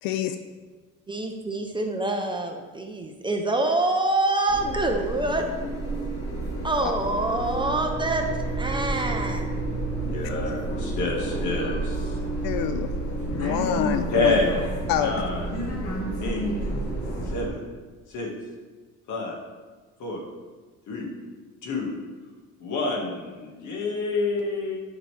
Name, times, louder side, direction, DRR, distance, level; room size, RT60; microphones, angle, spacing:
voice 1, 0.0-0.3 6.8-6.9 12.4-12.9 13.3-14.4 14.9-15.1, left 9 dB, 90° left, 9 dB, 0.5 m, -26 dB
voice 2, 1.1-5.5 6.6-9.5, right 2 dB, 15° right, 3 dB, 0.7 m, -26 dB
sound 1, 4.5-17.5, right 2 dB, 45° left, 2.1 m, -30 dB
voice 3, 10.0-12.2 14.1-15.5 16.2-16.5 17.2-17.7 18.1-18.3 19.1-19.4 20.0-20.2 20.9-21.1 21.6-21.9 22.6-24.8, left 3 dB, 60° left, 0 dB, 1.9 m, -28 dB
10.5 x 5.8 x 3.4 m, 1.4 s
cardioid pair, 135°, 33 cm